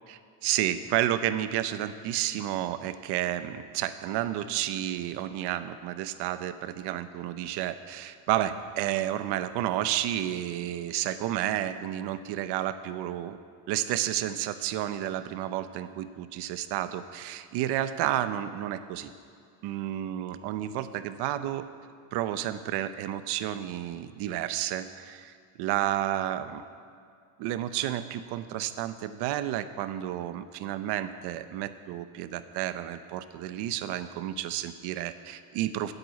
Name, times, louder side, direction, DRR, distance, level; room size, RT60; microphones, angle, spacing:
voice 1, 0.4-13.4 13.7-19.1 19.6-21.7 22.1-26.6 27.4-35.9, right 12 dB, 70° right, 11 dB, 0.9 m, -31 dB
14.0 x 8.1 x 9.5 m, 2.2 s
cardioid pair, 165°, 42 cm